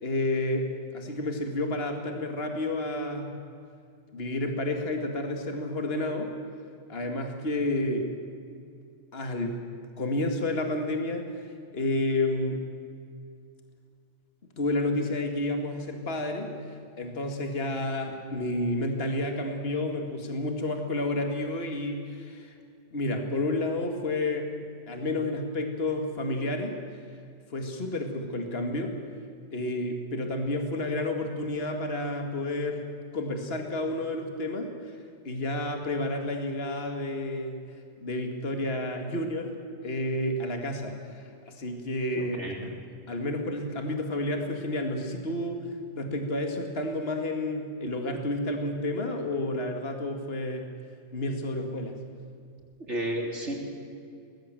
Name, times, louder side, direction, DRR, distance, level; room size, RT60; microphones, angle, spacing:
voice 1, 0.0-3.3 4.1-6.3 6.9-8.1 9.1-9.6 10.0-11.5 11.7-12.6 14.6-16.5 17.0-22.5 22.9-24.6 24.9-26.8 27.5-29.0 29.5-34.7 35.2-37.6 38.0-39.6 39.8-42.8 43.1-45.6 45.9-50.7 51.1-52.0, left 1 dB, 55° left, 4 dB, 2.3 m, -30 dB
voice 2, 42.1-42.6 52.9-53.6, right 1 dB, 65° right, 0 dB, 4.0 m, -32 dB
23.5 x 19.5 x 7.6 m, 2.4 s
omnidirectional pair, 1.3 m